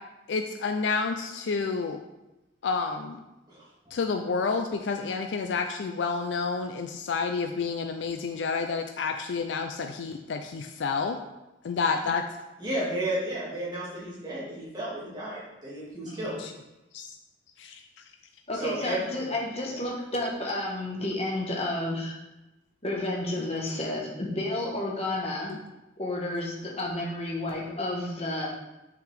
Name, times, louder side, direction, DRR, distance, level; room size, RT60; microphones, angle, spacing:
voice 1, 0.3-2.0 2.6-3.2 3.9-11.2 11.6-12.2 16.4-16.5 16.9-17.1 17.6-17.8, left 4 dB, 80° left, 5 dB, 0.4 m, -29 dB
voice 2, 12.6-16.4 18.6-19.1 19.6-19.7, right 1 dB, 25° right, -7 dB, 2.2 m, -33 dB
voice 3, 18.5-22.1 22.8-25.6 26.0-28.5, left 1 dB, 35° left, -2 dB, 1.2 m, -31 dB
5.9 x 5.6 x 3.4 m, 0.99 s
head